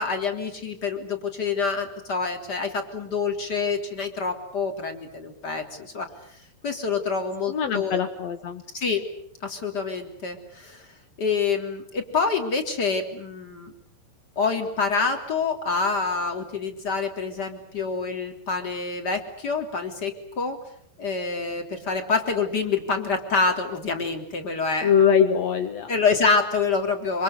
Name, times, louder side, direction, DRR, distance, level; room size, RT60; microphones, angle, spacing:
voice 1, 0.0-6.1 6.6-8.0 8.7-9.0 9.4-10.8 11.2-13.7 14.4-20.6 21.0-24.9 25.9-27.2, left 4 dB, 25° left, 5 dB, 3.5 m, -26 dB
voice 2, 7.5-8.6 24.8-25.9, left 7 dB, 60° left, 7 dB, 1.8 m, -22 dB
27.0 x 26.0 x 8.1 m, 0.67 s
omnidirectional pair, 4.7 m